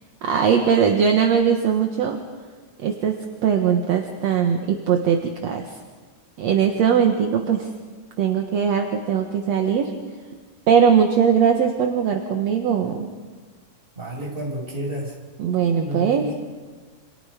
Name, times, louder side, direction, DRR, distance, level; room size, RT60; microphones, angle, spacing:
voice 1, 0.2-2.2 2.8-5.8 6.4-7.7 8.2-9.9 10.7-13.1 15.4-16.3, right 7 dB, 60° right, 4 dB, 2.5 m, -20 dB
voice 2, 14.0-15.1 15.7-16.3, right 1 dB, 15° right, -2 dB, 6.5 m, -30 dB
29.5 x 27.5 x 5.2 m, 1.4 s
omnidirectional pair, 3.7 m